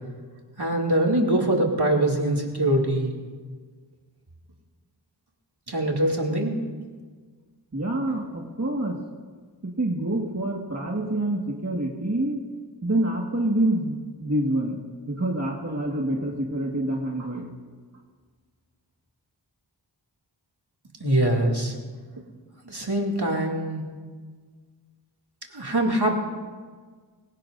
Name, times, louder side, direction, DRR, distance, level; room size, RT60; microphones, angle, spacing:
voice 1, 0.6-3.1 5.7-6.6 21.0-21.7 22.7-23.8 25.5-26.2, right 1 dB, 60° right, -1 dB, 2.4 m, -23 dB
voice 2, 7.7-9.0 9.6-12.4 12.8-14.8 15.1-17.5, right 1 dB, 35° right, -1 dB, 1.7 m, -26 dB
25.5 x 16.5 x 2.6 m, 1.5 s
wide cardioid pair, 40°, 44 cm